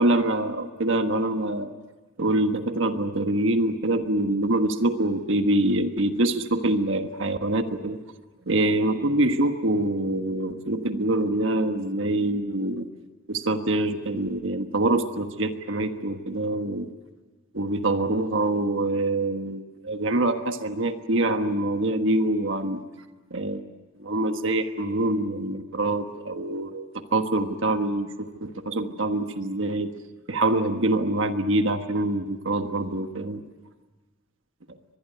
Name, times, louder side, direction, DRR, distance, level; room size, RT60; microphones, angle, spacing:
voice 1, 0.0-1.7 2.2-8.0 8.5-12.9 13.3-16.9 17.5-22.8 23.3-23.6 24.0-29.9 30.3-33.4, right 1 dB, 60° right, 7 dB, 1.4 m, -25 dB
24.0 x 21.0 x 9.3 m, 1.3 s
head